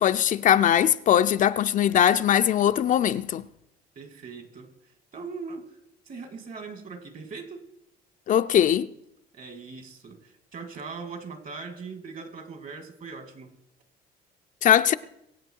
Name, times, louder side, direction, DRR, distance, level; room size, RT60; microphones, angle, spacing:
voice 1, 0.0-3.4 8.3-8.9 14.6-14.9, left 10 dB, 50° left, 0.5 m, -20 dB
voice 2, 4.0-5.8 6.1-7.7 9.3-13.6, right 4 dB, 50° right, 2.2 m, -40 dB
22.5 x 8.2 x 4.6 m
cardioid pair, 110°, 17 cm